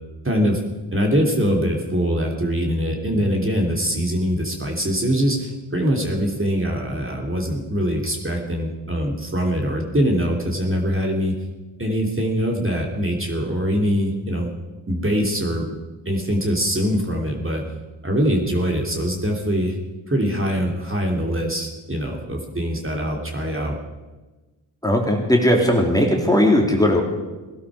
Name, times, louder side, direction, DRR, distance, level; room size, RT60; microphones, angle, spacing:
voice 1, 0.2-0.6 0.9-11.4 11.8-14.5 14.9-15.7 16.0-17.6 18.0-19.8 20.1-23.8, equal, 25° right, 0 dB, 3.0 m, -23 dB
voice 2, 24.8-27.0, left 1 dB, 5° left, 0 dB, 2.9 m, -17 dB
17.5 x 12.0 x 4.9 m, 1.2 s
cardioid pair, 45°, 50 cm